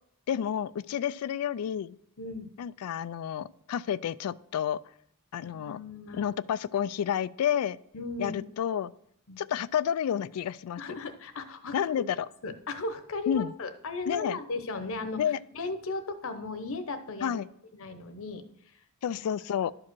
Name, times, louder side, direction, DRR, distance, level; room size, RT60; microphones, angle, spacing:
voice 1, 0.3-2.0 2.6-4.8 5.3-5.8 6.1-7.8 8.2-8.9 9.4-10.8 11.7-12.3 13.3-13.5 14.1-14.4 15.2-15.4 17.2-17.5 19.0-19.7, left 9 dB, 80° left, 17 dB, 0.3 m, -30 dB
voice 2, 2.2-2.5 5.4-6.3 7.9-8.4 9.3-9.4 10.8-11.9 12.4-17.4 17.7-19.2, left 3 dB, 65° left, 10 dB, 0.9 m, -37 dB
12.0 x 4.8 x 6.1 m, 0.71 s
head